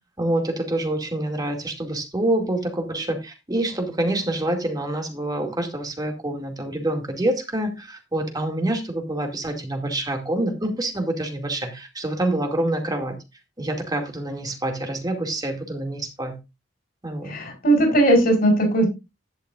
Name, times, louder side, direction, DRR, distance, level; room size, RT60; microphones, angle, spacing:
voice 1, 0.2-13.2 13.6-16.4 17.0-17.3, right 1 dB, 20° right, 2.4 m, -26 dB
voice 2, 17.3-18.9, right 1 dB, 55° left, 4.5 m, -18 dB
11.5 x 10.5 x 2.5 m
head